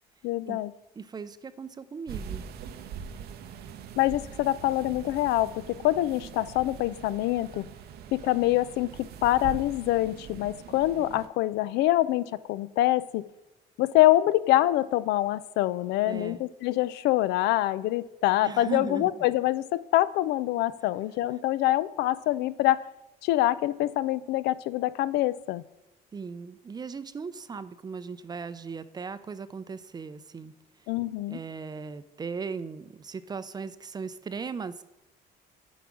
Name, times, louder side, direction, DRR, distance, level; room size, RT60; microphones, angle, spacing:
voice 1, 0.2-0.7 4.0-7.7 8.1-8.9 9.2-13.3 13.8-22.8 23.2-25.6 30.9-31.4, left 15 dB, 85° left, 17 dB, 0.4 m, -25 dB
voice 2, 1.0-2.4 16.1-16.4 18.4-19.2 26.1-30.5 31.3-34.8, right 5 dB, 25° right, 14 dB, 0.4 m, -38 dB
sound 1, 2.1-11.3, right 7 dB, 70° right, 0.7 m, -42 dB
8.0 x 4.7 x 6.1 m, 0.91 s
cardioid pair, 110°, 17 cm